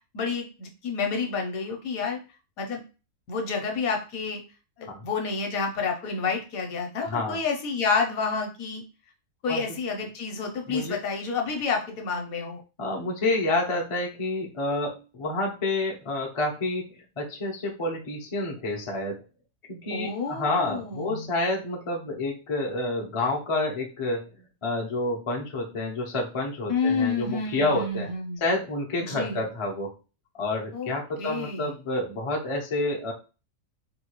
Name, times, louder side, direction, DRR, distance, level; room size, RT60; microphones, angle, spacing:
voice 1, 0.1-2.2 2.6-2.8 3.3-4.4 4.8-8.8 9.4-12.6 19.9-21.3 26.7-28.4 29.0-29.4 30.7-30.9 31.2-31.7, left 4 dB, 65° left, 2 dB, 1.1 m, -29 dB
voice 2, 7.0-7.4 9.5-9.6 10.7-11.0 12.8-19.2 19.7-24.3 24.6-28.1 28.4-29.9 30.4-33.1, left 2 dB, 45° left, -1 dB, 0.4 m, -29 dB
3.7 x 2.3 x 2.9 m, 0.32 s
omnidirectional pair, 1.8 m